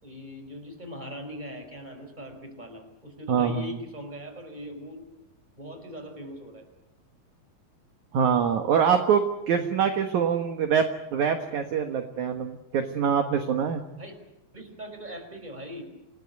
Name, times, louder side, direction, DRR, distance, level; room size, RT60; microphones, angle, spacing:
voice 1, 0.0-5.1 5.6-6.7 14.0-14.1 14.5-15.8, equal, 10° right, 5 dB, 4.9 m, -40 dB
voice 2, 3.3-3.8 8.1-13.8, right 7 dB, 60° right, 6 dB, 2.5 m, -24 dB
28.5 x 18.5 x 8.3 m, 0.89 s
omnidirectional pair, 4.4 m